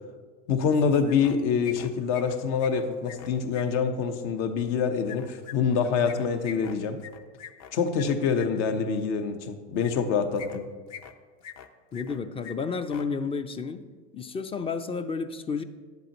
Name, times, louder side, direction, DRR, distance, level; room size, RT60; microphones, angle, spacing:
voice 1, 0.5-7.0 7.7-10.7, left 6 dB, 65° left, 7 dB, 1.0 m, -26 dB
sound 1, 0.7-1.4 1.6-3.6 5.0-8.5 9.8-10.0 10.3-11.1 11.4-12.2 12.4-12.5 12.8-13.0, left 9 dB, 45° left, 0.7 m, -44 dB
voice 2, 11.9-13.8 14.1-15.6, left 5 dB, 15° left, 10 dB, 0.3 m, -31 dB
10.5 x 8.2 x 3.0 m, 1.5 s
hypercardioid pair, 95°, 38 cm